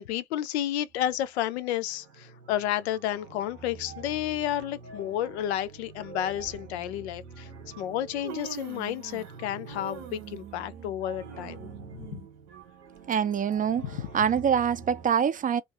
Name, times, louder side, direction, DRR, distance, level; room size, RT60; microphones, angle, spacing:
voice 1, 0.0-7.5 7.8-11.7 12.1-12.2 13.9-14.0, left 12 dB, 70° left, 0.5 m, -31 dB
sound 1, 0.9-1.4 1.6-15.1, right 4 dB, 85° right, 0.8 m, -46 dB
Human voice, 4.4-4.6 5.7-5.8 6.4-6.6 7.6-7.7 8.0-9.4 9.6-13.2 13.6-13.7 14.5-14.6, right 8 dB, 55° right, 0.8 m, -44 dB
voice 2, 13.1-13.9 14.1-15.6, right 7 dB, 25° right, 0.4 m, -25 dB
2.5 x 2.4 x 2.7 m
figure-of-eight pair, 60°, 34 cm